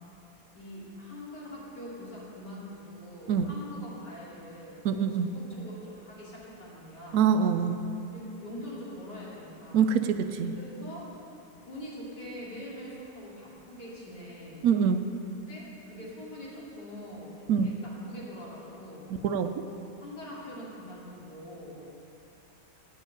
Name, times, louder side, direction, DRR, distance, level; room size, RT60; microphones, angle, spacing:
voice 1, 0.5-4.9 5.1-7.2 8.1-9.9 10.5-11.0 11.6-14.7 15.5-19.1 20.0-21.8, left 1 dB, 90° left, -7 dB, 3.3 m, -44 dB
voice 2, 4.8-5.3 7.1-7.8 9.7-10.6 14.6-15.1 17.5-17.7 19.2-19.7, right 7 dB, 75° right, 9 dB, 1.0 m, -25 dB
9.0 x 7.6 x 8.7 m, 2.8 s
omnidirectional pair, 1.7 m